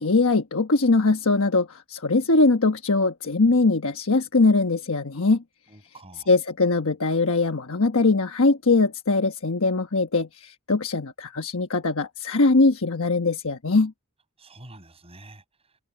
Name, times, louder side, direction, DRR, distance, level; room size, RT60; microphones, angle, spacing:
voice 1, 0.0-5.4 6.3-13.9, left 3 dB, 65° left, 1.2 m, -21 dB
voice 2, 5.7-6.3 14.4-15.8, right 2 dB, 25° right, 7.0 m, -48 dB
head